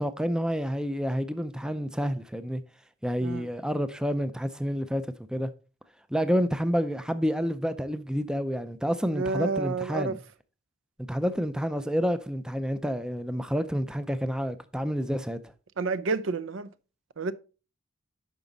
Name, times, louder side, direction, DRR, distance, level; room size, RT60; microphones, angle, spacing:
voice 1, 0.0-2.6 3.0-5.0 5.3-5.5 6.1-10.2 11.1-15.4, equal, 5° right, 0.4 m, -29 dB
voice 2, 9.1-10.2 15.8-16.7 17.2-17.3, right 4 dB, 65° right, 0.5 m, -29 dB
9.3 x 6.0 x 3.9 m
head